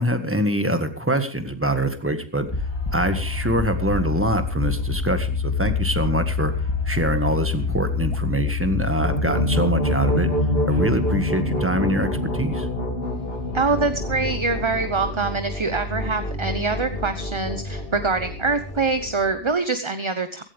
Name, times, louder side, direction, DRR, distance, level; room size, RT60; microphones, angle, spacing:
voice 1, 0.0-2.5 2.9-6.5 6.9-10.3 10.7-12.7, right 1 dB, 10° right, 7 dB, 1.7 m, -24 dB
sound 1, 2.5-11.2, left 4 dB, 20° left, 2.5 m, -26 dB
sound 2, 8.8-19.5, left 1 dB, 55° left, 2.8 m, -27 dB
sound 3, 13.0-19.4, left 5 dB, 85° left, 1.8 m, -43 dB
voice 2, 13.5-20.4, right 4 dB, 25° right, 9 dB, 0.9 m, -24 dB
16.5 x 16.0 x 3.5 m, 0.37 s
omnidirectional pair, 1.2 m